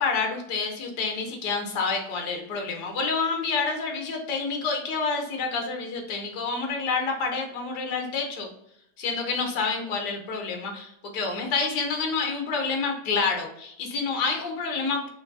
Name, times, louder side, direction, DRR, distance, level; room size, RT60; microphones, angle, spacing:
voice 1, 0.0-8.5 9.0-15.1, left 4 dB, 85° left, 2 dB, 1.4 m, -28 dB
5.7 x 2.6 x 2.6 m, 0.74 s
omnidirectional pair, 1.7 m